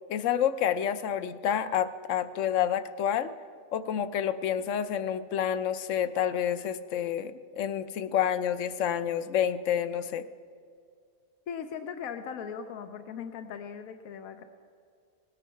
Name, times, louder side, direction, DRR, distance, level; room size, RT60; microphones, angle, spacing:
voice 1, 0.1-3.3 3.7-10.3, left 9 dB, 70° left, 12 dB, 0.9 m, -29 dB
voice 2, 11.5-14.4, left 7 dB, 90° left, 8 dB, 1.1 m, -39 dB
17.5 x 9.3 x 5.6 m, 2.2 s
omnidirectional pair, 1.4 m